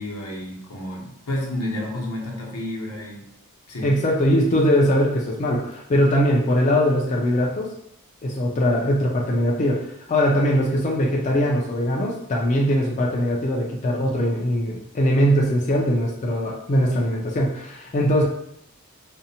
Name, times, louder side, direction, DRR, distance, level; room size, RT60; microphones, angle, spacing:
voice 1, 0.0-3.3 3.7-3.9, left 1 dB, 85° left, -2 dB, 0.7 m, -30 dB
voice 2, 3.8-7.7 8.2-18.2, equal, 35° left, -2 dB, 0.3 m, -21 dB
2.6 x 2.0 x 2.7 m, 0.78 s
head